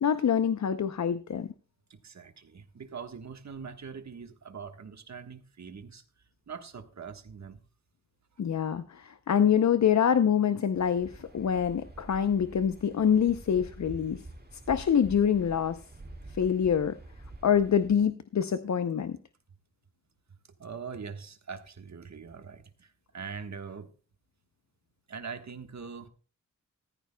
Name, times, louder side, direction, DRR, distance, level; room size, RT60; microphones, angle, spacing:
voice 1, 0.0-1.5 8.4-14.2 14.7-15.8 16.4-17.0 17.4-19.2, left 8 dB, 65° left, 11 dB, 0.6 m, -25 dB
voice 2, 1.9-7.6 20.6-23.9 25.1-26.1, right 6 dB, 60° right, 7 dB, 1.3 m, -43 dB
Waves surf, 10.7-18.1, right 2 dB, 30° right, 2.0 m, -47 dB
15.0 x 14.0 x 2.2 m, 0.36 s
wide cardioid pair, 100°, 31 cm